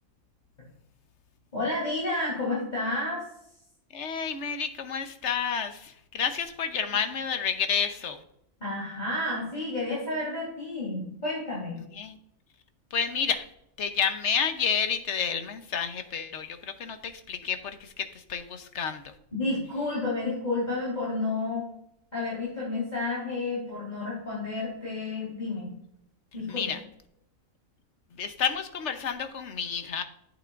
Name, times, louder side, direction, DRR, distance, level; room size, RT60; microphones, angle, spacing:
voice 1, 1.5-3.2 8.6-11.8 19.3-21.7 22.1-25.7 26.3-26.7, left 2 dB, 30° left, -7 dB, 3.7 m, -31 dB
voice 2, 3.9-8.2 11.9-12.2 12.9-13.5 13.8-19.1 26.5-26.8 28.2-30.0, left 6 dB, 60° left, 8 dB, 1.1 m, -30 dB
10.0 x 8.3 x 2.5 m, 0.76 s
omnidirectional pair, 1.4 m